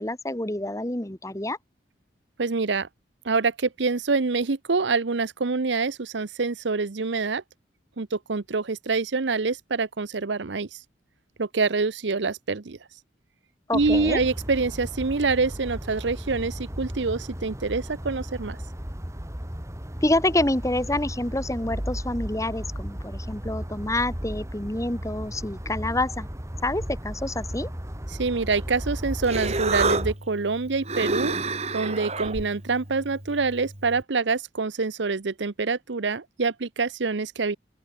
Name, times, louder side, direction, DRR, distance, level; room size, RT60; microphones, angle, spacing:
voice 1, 0.0-1.6 13.7-14.2 20.0-26.3 26.6-27.7, left 1 dB, 15° left, 1.5 m, -27 dB
voice 2, 2.4-2.9 3.2-7.4 8.0-10.7 11.4-12.8 13.7-18.6 28.2-31.3 31.7-37.6, right 4 dB, 75° right, 0.8 m, -26 dB
sound 1, 13.7-30.1, equal, 15° right, 2.1 m, -35 dB
Human voice, 28.8-34.0, right 3 dB, 35° right, 7.6 m, -30 dB
open air
head